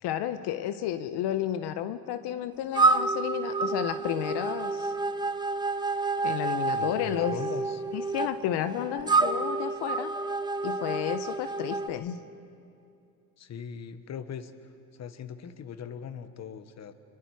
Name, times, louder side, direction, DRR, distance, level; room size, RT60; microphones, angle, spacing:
voice 1, 0.0-4.9 6.2-7.4 7.9-10.1 10.6-12.2, left 11 dB, 75° left, 11 dB, 1.0 m, -32 dB
sound 1, 2.7-11.9, right 3 dB, 10° right, 0.8 m, -29 dB
voice 2, 6.8-7.8 13.4-14.5 14.9-16.9, left 7 dB, 40° left, 11 dB, 1.2 m, -40 dB
30.0 x 24.5 x 4.8 m, 2.5 s
cardioid pair, 120°, 40 cm